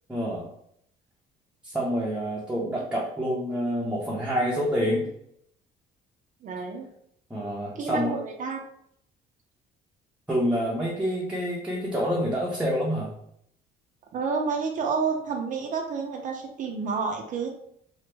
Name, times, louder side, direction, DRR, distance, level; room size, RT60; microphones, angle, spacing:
voice 1, 0.1-0.5 1.6-5.1 7.3-8.2 10.3-13.1, equal, 5° right, -4 dB, 0.6 m, -27 dB
voice 2, 6.4-6.9 7.7-8.6 14.1-17.6, right 5 dB, 50° right, 2 dB, 0.5 m, -29 dB
3.0 x 2.1 x 3.3 m, 0.72 s
cardioid pair, 110°, 17 cm